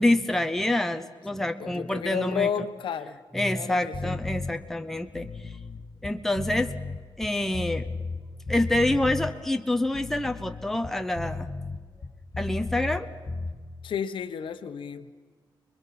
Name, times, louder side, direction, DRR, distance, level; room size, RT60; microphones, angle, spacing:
voice 1, 0.0-2.5 3.3-5.3 6.0-6.7 7.2-7.9 8.5-11.5 12.4-13.1, left 1 dB, 5° left, 6 dB, 0.9 m, -26 dB
voice 2, 1.3-4.2 13.8-15.1, left 7 dB, 75° left, 9 dB, 1.2 m, -32 dB
sound 1, 3.9-4.5 5.0-8.2 8.5-9.3 9.8-13.0 13.3-13.5, left 3 dB, 40° left, 2.1 m, -34 dB
29.0 x 21.5 x 6.0 m, 1.5 s
wide cardioid pair, 130°, 8 cm